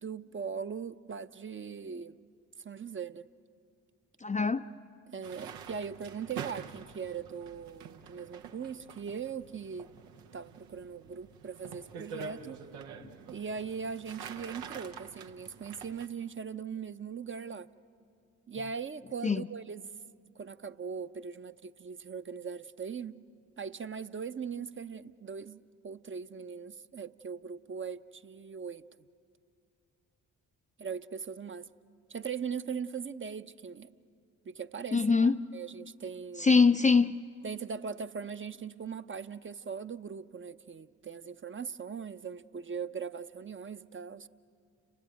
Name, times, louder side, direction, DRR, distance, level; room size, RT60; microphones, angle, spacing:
voice 1, 0.0-2.2 2.6-3.3 5.1-9.9 10.3-12.6 13.3-17.7 18.5-19.8 20.4-23.2 23.6-28.8 30.8-31.7 32.1-33.9 34.4-36.5 37.4-44.3, right 6 dB, 30° right, 0.8 m, -40 dB
voice 2, 4.2-4.6 19.2-19.4 34.9-35.4 36.4-37.2, left 4 dB, 20° left, 0.5 m, -23 dB
sound 1, 5.2-16.1, right 6 dB, 80° right, 1.0 m, -47 dB
30.0 x 18.0 x 9.3 m
hypercardioid pair, 40°, 43 cm